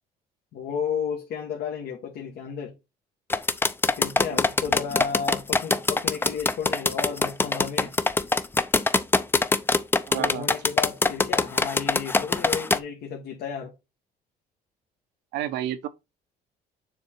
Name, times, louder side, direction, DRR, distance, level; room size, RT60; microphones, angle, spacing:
voice 1, 0.5-2.7 4.0-8.0 10.1-13.7, left 7 dB, 70° left, 1.4 m, -33 dB
sound 1, 3.3-12.8, left 3 dB, 15° left, 0.5 m, -22 dB
voice 2, 4.3-4.7 10.1-10.5 15.3-15.9, right 12 dB, 85° right, 0.8 m, -31 dB
6.9 x 3.7 x 4.2 m
cardioid pair, 110°, 17 cm